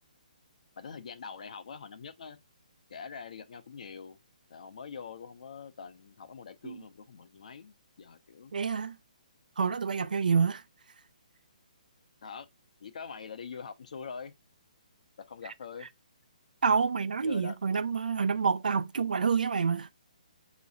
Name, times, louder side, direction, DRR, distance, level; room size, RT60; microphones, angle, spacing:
voice 1, 0.8-2.4 2.9-4.2 4.5-8.5 12.2-12.5 12.8-14.3 15.3-15.9 17.2-17.6, left 6 dB, 60° left, 0.8 m, -44 dB
voice 2, 8.5-9.0 9.6-10.6 16.6-19.9, right 5 dB, 85° right, 0.4 m, -27 dB
6.1 x 3.1 x 2.6 m
hypercardioid pair, 160°, 4 cm